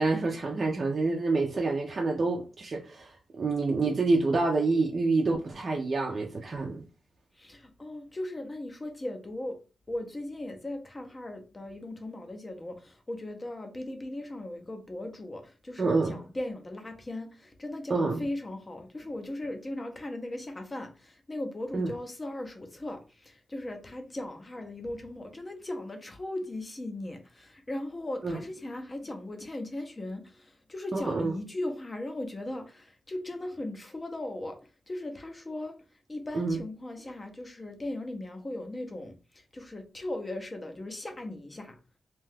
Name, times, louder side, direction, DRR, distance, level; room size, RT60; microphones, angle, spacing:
voice 1, 0.0-6.8 15.8-16.2 17.9-18.2 21.7-21.9 28.2-28.4 30.9-31.3 36.3-36.6, right 3 dB, 40° right, 0.4 m, -27 dB
voice 2, 7.4-9.6 9.9-34.6 34.9-35.8 36.1-41.8, left 1 dB, 20° left, 0.5 m, -38 dB
2.7 x 2.2 x 3.3 m
wide cardioid pair, 175°, 0 cm